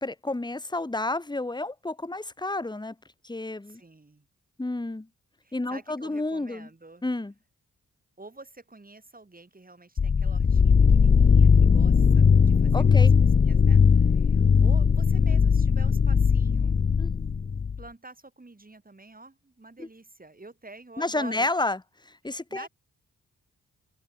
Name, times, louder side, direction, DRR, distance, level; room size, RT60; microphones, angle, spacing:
voice 1, 0.0-2.9 3.2-3.8 4.6-5.1 5.5-6.7 7.0-7.3 12.7-13.1 17.0-17.1 19.8-19.9 21.0-22.7, left 2 dB, 15° left, 1.4 m, -30 dB
voice 2, 3.7-4.3 5.4-7.0 8.2-16.8 17.8-21.5 22.3-22.7, right 2 dB, 25° right, 5.1 m, -48 dB
sound 1, 10.0-17.8, left 6 dB, 30° left, 0.6 m, -19 dB
open air
cardioid pair, 55°, 33 cm